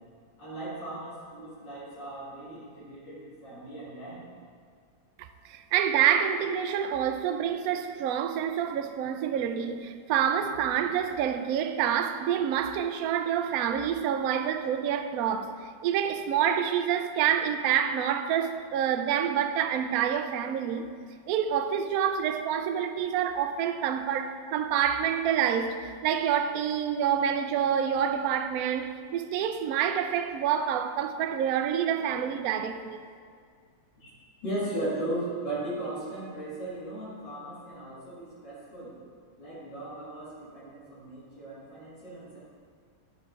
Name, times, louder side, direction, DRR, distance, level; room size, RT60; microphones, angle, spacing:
voice 1, 0.4-4.3 34.0-34.1 34.4-39.0 39.4-42.4, right 1 dB, 65° left, 2.9 m, -37 dB
voice 2, 5.5-20.9 21.3-33.0, right 9 dB, 85° right, 0.8 m, -27 dB
11.0 x 5.0 x 4.6 m
omnidirectional pair, 2.1 m